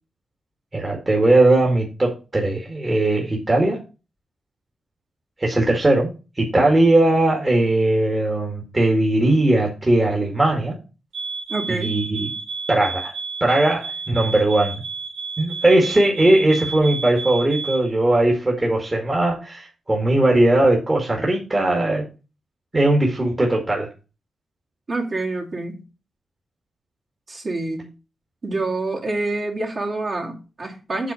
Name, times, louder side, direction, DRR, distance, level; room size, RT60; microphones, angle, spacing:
voice 1, 0.7-3.8 5.4-6.1 6.4-10.7 11.7-12.3 12.7-13.1 13.4-14.8 15.4-22.0 22.7-23.9, right 2 dB, 25° right, -1 dB, 2.0 m, -19 dB
sound 1, 11.1-17.9, right 4 dB, 90° right, 1.7 m, -31 dB
voice 2, 11.5-12.0 24.9-25.8 27.3-27.9 28.4-31.1, right 2 dB, 45° right, -2 dB, 2.9 m, -27 dB
8.0 x 4.0 x 6.9 m, 0.32 s
cardioid pair, 105°, 0 cm